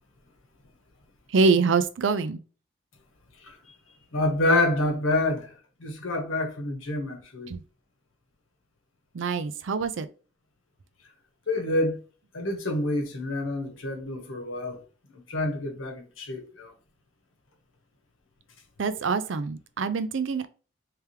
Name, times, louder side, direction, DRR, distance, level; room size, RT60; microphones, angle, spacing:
voice 1, 1.3-2.4 7.5-7.6 9.1-10.1 18.8-20.5, right 4 dB, 70° right, 0.4 m, -25 dB
voice 2, 3.4-3.8 4.1-5.5 5.8-7.5 11.5-12.0 12.3-14.8 15.3-16.7, left 2 dB, 90° left, 1.2 m, -27 dB
3.4 x 3.3 x 3.0 m
head